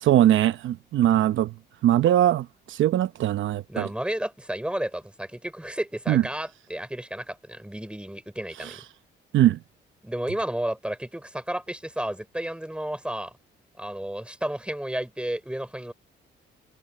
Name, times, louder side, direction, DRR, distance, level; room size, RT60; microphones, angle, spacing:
voice 1, 0.0-1.5 1.8-3.9 6.1-6.2 8.6-8.8 9.3-9.6, right 12 dB, 75° right, 0.9 m, -21 dB
voice 2, 3.7-8.8 10.0-13.3 13.8-15.9, right 1 dB, 5° right, 5.0 m, -32 dB
cardioid pair, 90°, 20 cm